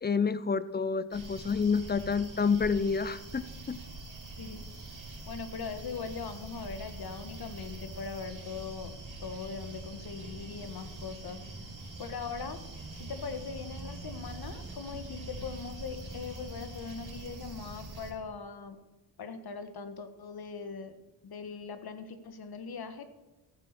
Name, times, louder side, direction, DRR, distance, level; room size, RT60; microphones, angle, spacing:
voice 1, 0.0-3.8, left 5 dB, 20° left, 16 dB, 0.7 m, -29 dB
city insects, 1.1-18.1, right 2 dB, 40° right, 4.4 m, -44 dB
voice 2, 5.3-8.9 9.2-11.5 12.0-12.6 13.0-18.8 19.2-20.9 21.2-23.0, left 5 dB, 50° left, 9 dB, 1.7 m, -40 dB
14.5 x 7.7 x 6.8 m, 1.1 s
cardioid pair, 85°, 47 cm